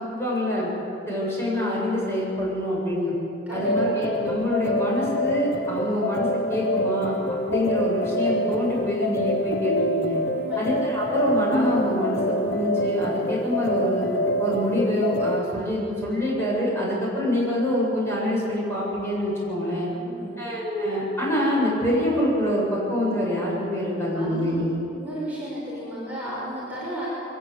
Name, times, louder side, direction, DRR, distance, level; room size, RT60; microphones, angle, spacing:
voice 1, 0.2-0.7 1.1-3.2 3.5-7.2 7.5-10.2 10.6-14.1 14.4-19.9 20.4-24.7, left 1 dB, 15° left, -5 dB, 7.7 m, -25 dB
voice 2, 3.5-4.0 10.3-10.7 19.9-20.4 24.1-24.5 24.9-27.1, equal, 10° right, -8 dB, 5.5 m, -34 dB
sound 1, 3.6-15.4, left 1 dB, 60° left, 1.4 m, -26 dB
23.0 x 20.0 x 8.4 m, 2.8 s
head